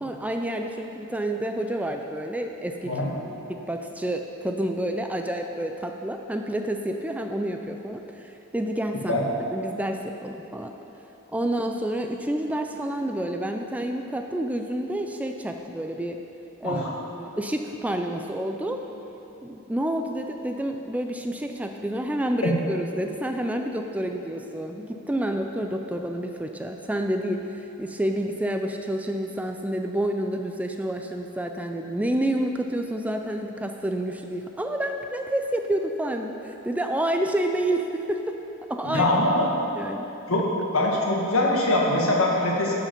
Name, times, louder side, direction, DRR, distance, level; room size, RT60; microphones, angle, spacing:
voice 1, 0.0-2.9 3.5-9.1 9.5-10.7 11.3-16.2 16.6-16.8 17.1-18.8 19.4-38.4 38.7-39.1 39.8-40.1, right 1 dB, 5° right, 4 dB, 0.3 m, -29 dB
voice 2, 38.8-39.6 40.3-40.4 40.7-42.7, left 1 dB, 75° left, -2 dB, 1.5 m, -23 dB
11.0 x 4.9 x 5.2 m, 3.0 s
head